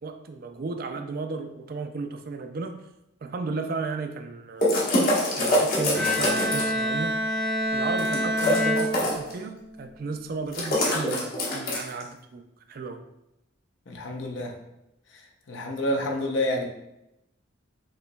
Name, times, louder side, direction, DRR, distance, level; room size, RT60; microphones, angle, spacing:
voice 1, 0.0-2.8 3.2-4.8 5.4-7.1 7.7-13.0, right 3 dB, 45° right, 7 dB, 0.4 m, -34 dB
sound 1, 4.6-6.8 8.0-9.3 10.5-12.0, left 1 dB, 45° left, 1.1 m, -24 dB
Bowed string instrument, 6.0-9.7, equal, 5° left, 0.6 m, -27 dB
voice 2, 13.9-14.5 15.5-16.7, left 1 dB, 65° left, 2 dB, 0.7 m, -28 dB
6.7 x 3.0 x 2.2 m, 0.86 s
head